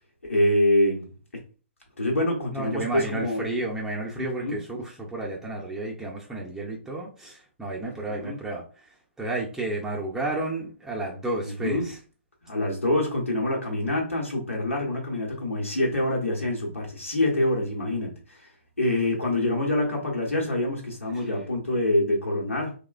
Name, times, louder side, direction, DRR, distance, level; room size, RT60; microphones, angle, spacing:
voice 1, 0.2-1.1 2.0-3.5 4.1-4.6 7.8-8.4 11.4-11.9 12.4-18.5 18.8-22.7, left 1 dB, 85° left, 0.9 m, -26 dB
voice 2, 2.5-8.6 9.2-12.0, right 2 dB, 5° right, 0.5 m, -31 dB
3.0 x 2.1 x 2.3 m
figure-of-eight pair, 130°, 7 cm